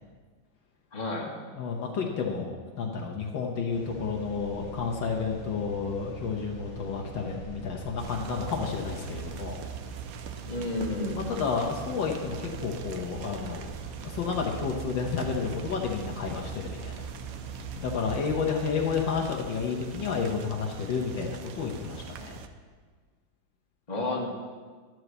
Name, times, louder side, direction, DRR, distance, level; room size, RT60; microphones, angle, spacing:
voice 1, 0.9-1.3 10.4-11.2 23.9-24.3, left 2 dB, 20° left, -3 dB, 1.6 m, -31 dB
voice 2, 1.5-9.6 11.2-13.7 14.0-17.1 17.7-22.4, left 5 dB, 70° left, 0 dB, 1.6 m, -31 dB
sound 1, 3.7-18.3, right 7 dB, 20° right, 1.9 m, -43 dB
sound 2, 8.0-22.5, right 7 dB, 90° right, 0.7 m, -42 dB
12.0 x 4.7 x 8.0 m, 1.5 s
omnidirectional pair, 2.2 m